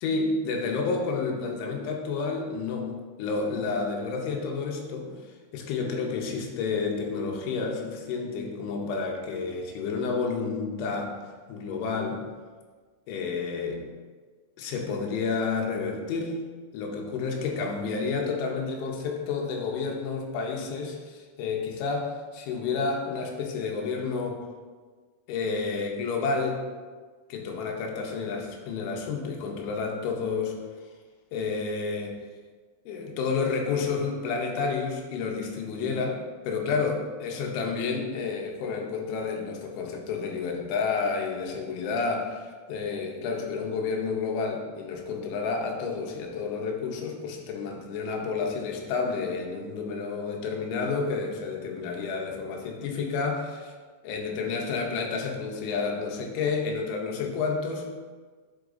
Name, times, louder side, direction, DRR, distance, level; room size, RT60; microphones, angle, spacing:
voice 1, 0.0-2.9 3.2-5.1 5.5-11.1 11.5-12.2 13.1-13.8 14.6-16.4 16.7-24.4 25.3-26.6 27.3-30.6 31.3-32.2 32.9-36.2 36.5-53.7 54.0-57.9, left 4 dB, 80° left, 1 dB, 3.2 m, -30 dB
9.6 x 6.3 x 2.6 m, 1.4 s
omnidirectional pair, 5.5 m